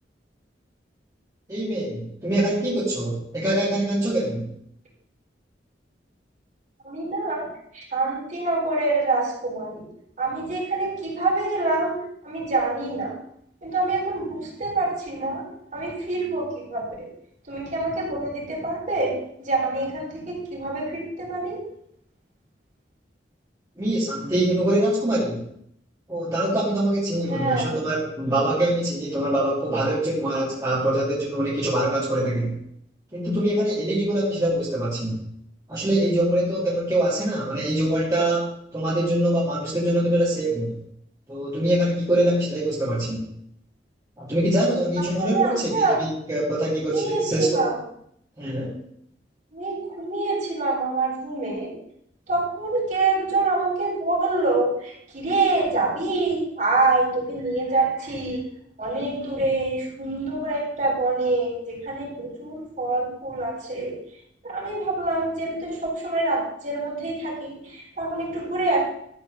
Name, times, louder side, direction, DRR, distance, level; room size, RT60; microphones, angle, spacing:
voice 1, 1.5-4.4 23.8-25.4 26.1-32.5 33.1-35.2 35.7-38.5 38.7-40.7 41.3-43.2 44.2-47.6 48.4-48.7, right 1 dB, 20° right, -7 dB, 2.1 m, -24 dB
voice 2, 6.8-7.5 7.7-9.9 10.2-12.0 12.2-13.2 13.6-15.4 15.7-17.1 17.5-21.6 27.3-27.8 45.0-46.0 46.9-47.8 49.5-51.7 52.3-58.4 58.8-63.9 64.4-68.8, right 3 dB, 45° right, -3 dB, 3.9 m, -26 dB
12.5 x 4.3 x 6.3 m, 0.72 s
head